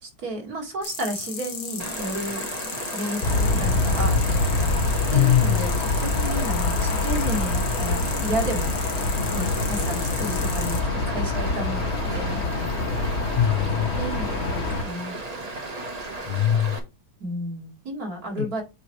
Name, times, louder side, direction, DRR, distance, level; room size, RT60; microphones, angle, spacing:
voice 1, 0.0-2.5 2.9-4.2 5.1-5.7 6.0-8.8 9.3-10.8 11.1-12.7 14.0-15.2 17.2-18.6, right 1 dB, 65° right, 2.4 m, -32 dB
sound 1, 0.8-10.8, left 6 dB, 85° left, 1.9 m, -35 dB
Stream, 1.8-16.8, right 2 dB, 30° right, 0.9 m, -35 dB
Aircraft, 3.2-14.8, left 3 dB, 50° left, 1.0 m, -25 dB
voice 2, 5.1-5.7 13.3-14.1 16.3-16.8 18.4-18.5, left 11 dB, 70° left, 0.6 m, -22 dB
8.0 x 3.9 x 3.1 m
omnidirectional pair, 1.7 m